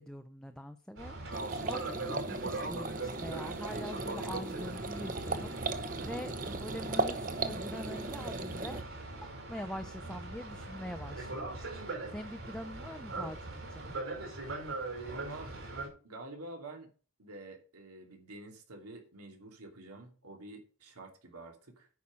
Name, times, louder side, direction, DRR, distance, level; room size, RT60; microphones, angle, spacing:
voice 1, 0.0-8.8 9.2-11.6 12.1-14.0, equal, 5° left, 6 dB, 0.5 m, -44 dB
Boat Water vehicle, 1.0-15.9, right 2 dB, 60° right, 5.3 m, -41 dB
sound 1, 1.3-8.8, right 3 dB, 35° right, 0.9 m, -37 dB
voice 2, 15.0-15.5 16.0-16.9 17.2-21.9, right 2 dB, 90° right, 3 dB, 2.9 m, -48 dB
9.5 x 6.0 x 7.5 m, 0.38 s
head